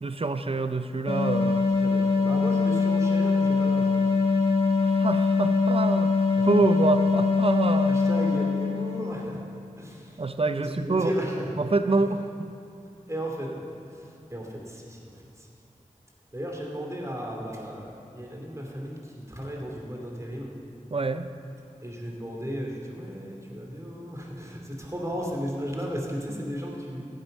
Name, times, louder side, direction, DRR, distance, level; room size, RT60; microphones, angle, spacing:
voice 1, 0.0-1.7 4.8-6.1 6.4-8.0 10.2-11.1 11.5-12.5 20.9-21.3, right 3 dB, 45° right, 10 dB, 0.6 m, -26 dB
sound 1, 1.1-9.2, left 4 dB, 45° left, 1.4 m, -23 dB
voice 2, 1.8-4.0 6.4-6.5 7.8-9.4 9.8-10.1 10.5-11.5 13.1-13.6 14.3-15.1 16.3-19.0 19.3-20.5 21.8-27.0, equal, 20° right, -1 dB, 2.6 m, -34 dB
15.0 x 8.1 x 5.5 m, 2.9 s
wide cardioid pair, 45°, 14 cm